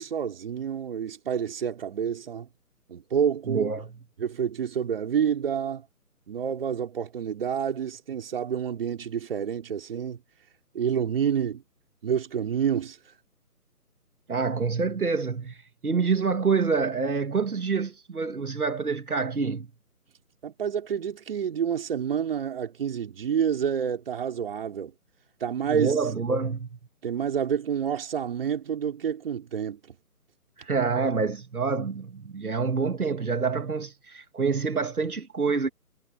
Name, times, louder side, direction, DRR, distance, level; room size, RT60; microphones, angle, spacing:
voice 1, 0.0-2.5 2.9-3.7 4.2-5.8 6.3-10.2 10.7-11.6 12.0-13.0 20.4-24.9 25.4-25.9 27.0-29.8, right 8 dB, 35° right, 4.8 m, -28 dB
voice 2, 3.5-3.9 14.3-19.7 25.7-26.7 30.6-35.7, right 5 dB, 70° right, 2.2 m, -27 dB
figure-of-eight pair, 155°, 46 cm